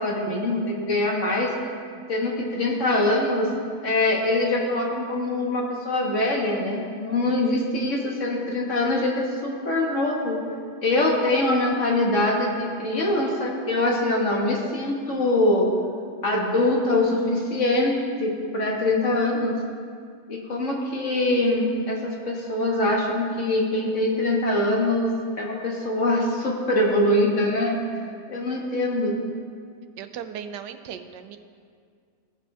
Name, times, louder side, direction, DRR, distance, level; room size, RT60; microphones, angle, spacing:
voice 1, 0.0-1.5 2.1-3.5 3.8-10.4 10.8-15.7 16.2-19.6 20.3-28.0 28.3-29.2, left 1 dB, 45° left, -2 dB, 1.8 m, -23 dB
voice 2, 30.0-31.4, right 8 dB, 90° right, 9 dB, 1.3 m, -37 dB
17.5 x 6.1 x 3.4 m, 2.1 s
omnidirectional pair, 1.8 m